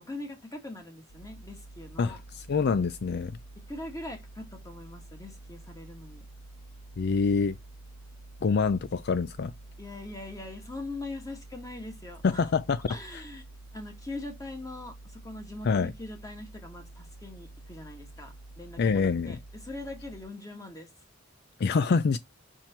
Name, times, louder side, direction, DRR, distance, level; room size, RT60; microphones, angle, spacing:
voice 1, 0.0-2.2 3.7-6.3 9.8-12.5 12.9-13.4 13.7-20.9, left 2 dB, 15° left, 1.8 m, -42 dB
sound 1, 1.1-20.2, right 2 dB, 80° left, 1.8 m, -48 dB
voice 2, 2.0-3.3 7.0-7.6 8.4-9.5 12.2-12.8 15.6-15.9 18.8-19.4 21.6-22.2, left 5 dB, 55° left, 0.4 m, -26 dB
5.8 x 4.6 x 4.4 m
head